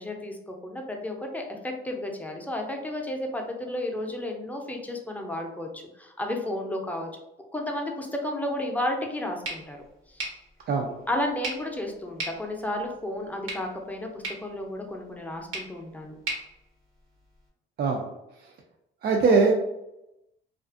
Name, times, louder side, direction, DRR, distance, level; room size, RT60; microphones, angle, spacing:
voice 1, 0.0-7.1 7.5-9.8 10.1-10.2 11.1-16.1, left 1 dB, 10° left, 1 dB, 0.5 m, -32 dB
sound 1, 9.4-17.5, right 2 dB, 80° right, 1.0 m, -40 dB
voice 2, 19.0-19.5, right 4 dB, 55° right, 0 dB, 0.4 m, -21 dB
2.4 x 2.4 x 2.4 m, 0.89 s
cardioid pair, 90°, 20 cm